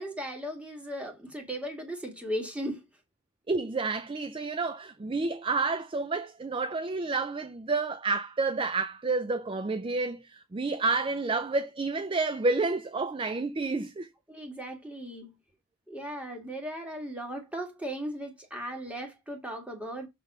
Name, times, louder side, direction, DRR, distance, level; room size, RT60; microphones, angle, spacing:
voice 1, 0.0-2.9 14.3-15.3 15.9-20.1, equal, 5° right, 1.9 m, -37 dB
voice 2, 3.5-14.1, right 3 dB, 25° right, 0.4 m, -30 dB
6.6 x 4.0 x 5.3 m
head